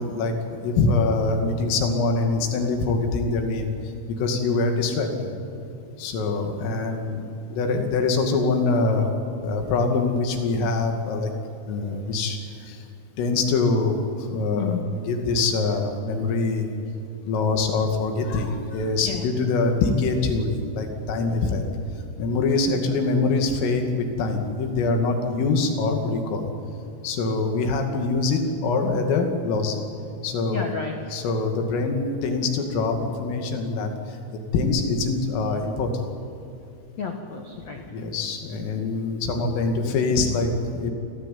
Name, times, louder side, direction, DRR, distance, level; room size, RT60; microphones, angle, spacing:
voice 1, 0.0-5.4 6.0-7.2 7.5-9.1 9.4-11.3 11.7-12.9 13.2-16.7 17.3-21.6 22.2-26.4 27.0-29.8 30.2-30.7 31.1-34.2 34.5-36.1 37.9-40.9, left 3 dB, 80° left, 4 dB, 5.1 m, -24 dB
voice 2, 14.3-14.9 19.0-19.2 30.5-31.1 37.0-37.8, left 5 dB, 60° left, 3 dB, 1.8 m, -31 dB
29.5 x 18.0 x 9.4 m, 2.7 s
omnidirectional pair, 5.8 m